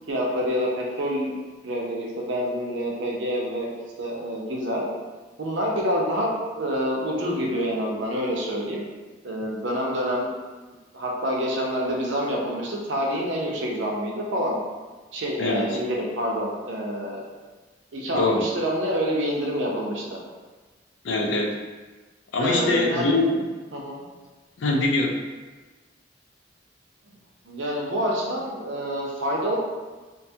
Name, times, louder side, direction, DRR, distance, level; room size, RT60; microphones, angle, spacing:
voice 1, 0.1-1.4 1.6-4.9 5.4-6.3 6.6-8.9 9.2-10.3 10.9-14.6 15.1-17.2 17.9-20.0 22.4-23.1 23.7-24.0 27.5-29.6, equal, 80° right, -2 dB, 0.6 m, -27 dB
voice 2, 15.4-15.8 18.1-18.4 21.0-21.6 22.3-23.4 24.6-25.2, left 2 dB, 85° left, 0 dB, 0.4 m, -23 dB
2.6 x 2.2 x 2.7 m, 1.3 s
head